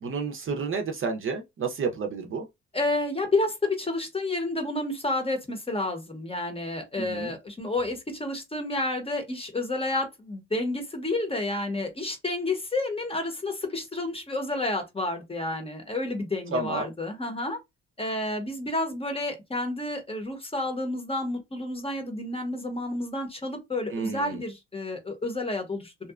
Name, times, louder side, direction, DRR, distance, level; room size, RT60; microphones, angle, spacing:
voice 1, 0.0-2.5 7.0-7.3 16.5-16.9 23.9-24.4, right 4 dB, 45° right, 0.6 m, -30 dB
voice 2, 2.7-17.6 18.0-26.1, left 2 dB, 20° left, 0.8 m, -30 dB
2.7 x 2.2 x 2.4 m
cardioid pair, 90°, 30 cm